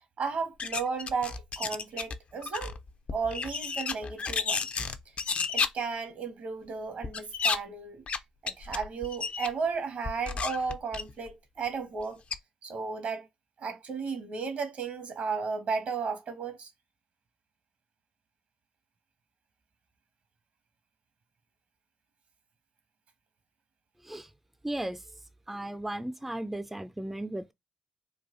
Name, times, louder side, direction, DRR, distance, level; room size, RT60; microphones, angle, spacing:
voice 1, 0.2-2.8 3.1-4.7 5.5-8.0 8.4-12.2 12.6-13.3 13.6-16.7, right 5 dB, 65° right, 1.0 m, -34 dB
sound 1, 0.6-2.2 2.4-5.7 7.0-7.6 8.1-8.2 8.5-9.5 10.0-11.3 12.0-12.1 12.3-12.4, left 5 dB, 55° left, 0.4 m, -32 dB
voice 2, 24.6-25.0 25.5-27.5, right 1 dB, 10° right, 0.3 m, -35 dB
3.9 x 2.3 x 2.5 m
hypercardioid pair, 50°, 3 cm